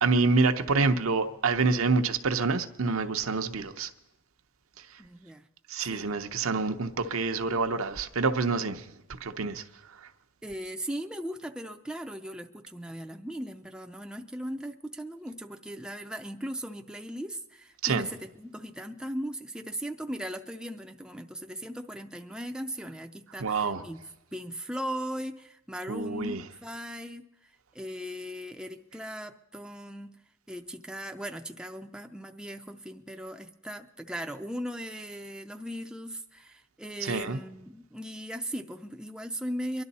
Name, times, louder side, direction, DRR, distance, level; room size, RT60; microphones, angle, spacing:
voice 1, 0.0-3.9 5.7-8.8 9.1-9.6 17.8-18.1 23.4-23.8 25.9-26.4 37.0-37.4, right 4 dB, 75° right, 0.8 m, -27 dB
voice 2, 5.0-5.4 5.9-6.1 10.4-24.0 24.3-27.2 27.7-30.1 30.5-39.8, equal, 5° right, 0.4 m, -38 dB
23.5 x 11.5 x 4.1 m
head